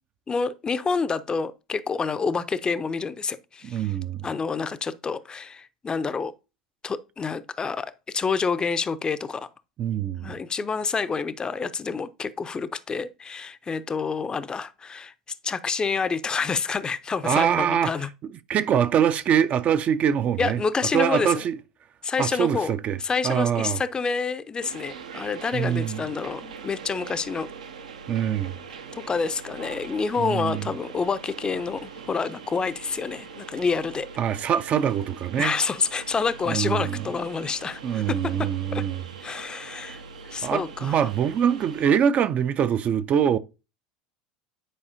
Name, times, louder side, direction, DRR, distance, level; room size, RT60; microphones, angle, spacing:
voice 1, 0.3-3.9 4.2-6.3 6.8-9.5 10.2-15.1 15.4-18.1 20.4-21.4 22.0-27.5 29.0-34.1 35.4-38.9 39.2-41.1, left 5 dB, 20° left, 0.5 m, -28 dB
voice 2, 3.6-4.3 9.8-10.3 17.2-17.9 18.5-20.6 20.9-21.6 22.2-23.0 23.2-23.8 25.5-26.0 28.1-28.5 30.2-30.6 34.2-35.5 36.5-37.0 37.8-39.0 40.4-43.4, right 8 dB, 35° right, 0.5 m, -23 dB
sound 1, 24.6-41.8, right 5 dB, 75° right, 0.7 m, -42 dB
9.8 x 4.7 x 2.7 m
figure-of-eight pair, 75°, 4 cm